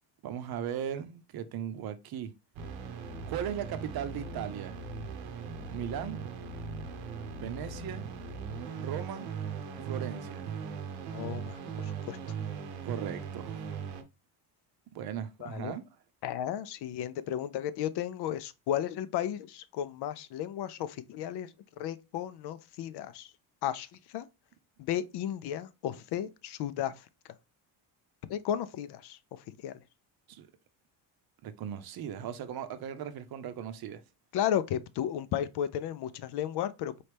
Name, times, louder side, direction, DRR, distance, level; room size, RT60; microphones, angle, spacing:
voice 1, 0.2-2.3 3.3-4.8 5.7-6.2 7.4-8.1 8.8-9.3 9.8-10.5 12.8-13.5 14.9-15.8 30.3-30.5 31.4-34.0, right 9 dB, 55° right, 0.7 m, -37 dB
sound 1, 2.6-14.0, right 5 dB, 85° right, 0.9 m, -39 dB
voice 2, 11.1-11.6 12.1-12.2 15.4-15.8 16.2-21.5 21.8-23.3 23.6-23.9 24.1-24.3 24.8-26.9 28.3-29.2 29.6-29.8 34.3-37.0, left 10 dB, 60° left, 0.5 m, -34 dB
4.2 x 3.1 x 3.3 m
cardioid pair, 120°, 45 cm